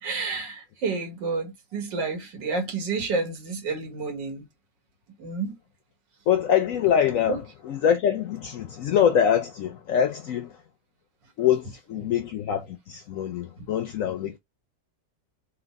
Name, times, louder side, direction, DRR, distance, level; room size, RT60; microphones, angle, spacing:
voice 1, 0.0-4.5 5.2-5.6 7.3-7.4 12.0-12.1 13.6-13.7, right 4 dB, 85° right, 2.0 m, -30 dB
voice 2, 6.3-10.5 11.4-14.4, left 9 dB, 70° left, 0.8 m, -24 dB
4.3 x 2.3 x 4.0 m
omnidirectional pair, 1.9 m